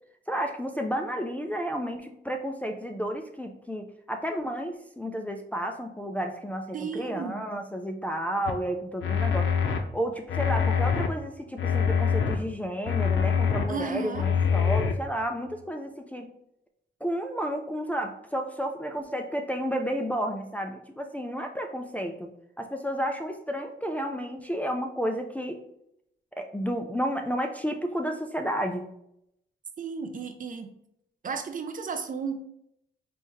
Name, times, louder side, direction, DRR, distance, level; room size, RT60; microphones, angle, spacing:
voice 1, 0.3-9.5 9.9-16.3 17.0-22.3 22.6-25.6 26.4-28.9, equal, 10° left, 3 dB, 0.4 m, -31 dB
voice 2, 6.7-7.4 13.7-14.2 29.8-30.7 31.2-32.4, right 5 dB, 45° right, 6 dB, 0.5 m, -33 dB
sound 1, 8.5-8.6 9.0-9.8 10.3-11.1 11.6-12.4 12.9-13.6 14.1-14.9, left 6 dB, 90° left, 0.6 m, -24 dB
4.5 x 2.8 x 3.5 m, 0.76 s
cardioid pair, 105°, 19 cm